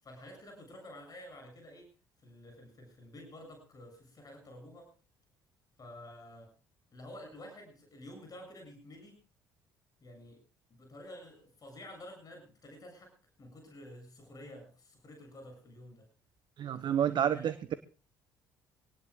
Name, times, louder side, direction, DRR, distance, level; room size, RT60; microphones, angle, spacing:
voice 1, 0.0-1.9 2.2-4.9 5.8-6.5 6.9-9.2 10.0-10.4 10.7-13.1 13.4-16.1 16.6-17.8, left 1 dB, 35° left, 4 dB, 7.2 m, -50 dB
voice 2, 16.6-17.8, right 9 dB, 45° right, 14 dB, 0.7 m, -29 dB
25.0 x 18.5 x 2.3 m, 0.34 s
figure-of-eight pair, 50°, 11 cm